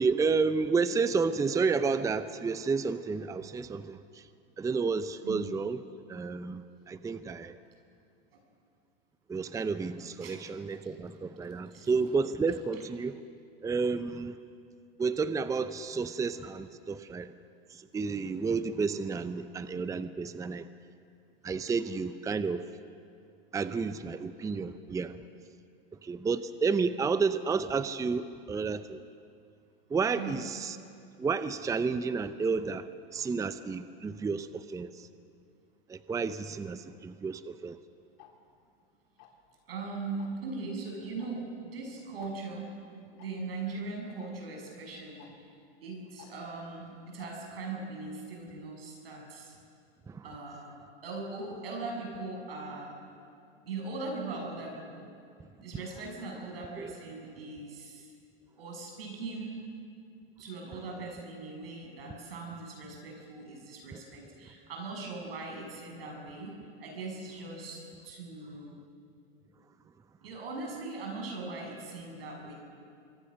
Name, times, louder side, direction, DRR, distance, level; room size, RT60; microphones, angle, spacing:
voice 1, 0.0-4.3 4.6-5.8 6.1-7.5 9.3-13.2 13.6-14.4 15.0-17.3 17.7-20.7 21.4-22.6 23.5-25.2 26.0-29.0 29.9-30.8 31.2-35.1 35.9-37.8 50.1-50.2 56.8-56.9 63.9-64.0, right 4 dB, 10° right, 12 dB, 0.7 m, -31 dB
Tick-tock, 38.2-38.3 39.2-39.5 40.2-40.4 41.2-41.3 41.6-41.7 42.2-42.3 43.2-43.3 44.2-44.3 45.2-45.3 46.2-46.3 47.2-47.3, left 16 dB, 55° left, 3.5 m, -53 dB
voice 2, 39.7-42.7 43.1-45.3 45.8-49.6 50.2-50.7 51.0-53.0 53.7-55.1 55.6-58.1 58.6-59.6 60.4-68.8 70.2-72.5, right 3 dB, 85° right, 1 dB, 7.4 m, -40 dB
26.0 x 23.0 x 6.5 m, 2.4 s
hypercardioid pair, 115°, 29 cm